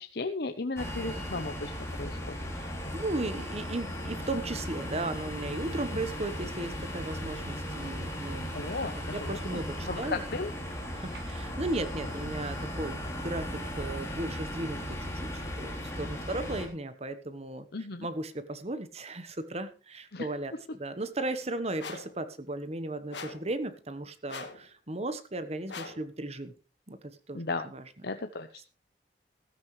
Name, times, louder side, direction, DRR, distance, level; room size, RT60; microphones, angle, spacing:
voice 1, 0.0-2.4 8.5-9.6 9.9-10.5 17.7-18.1 20.1-20.3 27.3-27.7 28.0-28.6, left 3 dB, 65° left, 8 dB, 0.9 m, -35 dB
sound 1, 0.8-16.7, equal, 15° left, 3.6 m, -37 dB
voice 2, 2.5-8.6 9.1-10.2 10.9-15.7 16.0-17.7 18.0-26.5 26.9-27.4 27.7-27.8, right 2 dB, 35° right, 11 dB, 1.2 m, -36 dB
sound 2, 4.8-13.1, right 1 dB, 60° right, 2.4 m, -50 dB
sound 3, 21.8-22.2 23.1-23.5 24.3-24.6 25.7-26.1, left 5 dB, 90° left, 2.1 m, -42 dB
16.0 x 13.0 x 3.2 m, 0.33 s
head